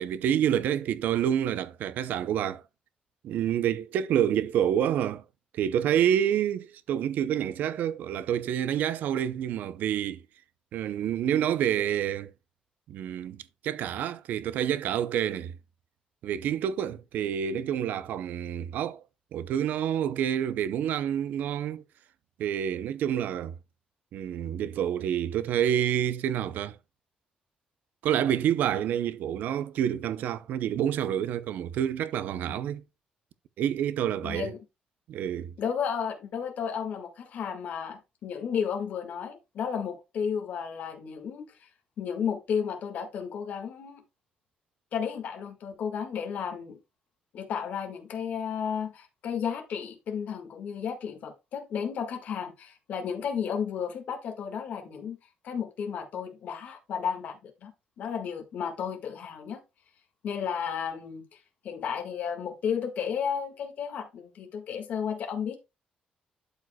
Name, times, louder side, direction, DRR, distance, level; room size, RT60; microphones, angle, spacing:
voice 1, 0.0-2.6 3.2-5.2 5.5-10.2 10.7-12.3 12.9-15.5 16.2-19.0 19.3-21.8 22.4-23.5 24.1-26.8 28.0-32.8 33.6-34.5 35.1-35.5, right 10 dB, 80° right, 0.6 m, -28 dB
voice 2, 34.2-34.6 35.6-41.7 42.0-44.0 44.9-46.8 47.3-55.2 55.4-57.7 58.0-59.6 60.2-61.4 61.6-65.6, left 7 dB, 65° left, 1.7 m, -33 dB
12.0 x 5.0 x 2.2 m
cardioid pair, 160°, 3 cm